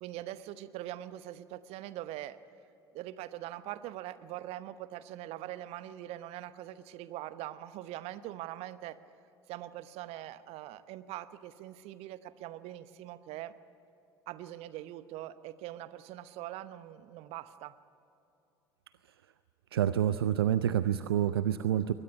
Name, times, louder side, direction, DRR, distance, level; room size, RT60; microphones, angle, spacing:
voice 1, 0.0-2.4 2.9-9.0 9.5-13.5 14.3-17.8, right 14 dB, 55° right, 14 dB, 1.0 m, -42 dB
voice 2, 19.7-21.9, right 10 dB, 75° right, 14 dB, 0.5 m, -28 dB
22.0 x 19.0 x 9.9 m, 2.9 s
figure-of-eight pair, 60°, 13 cm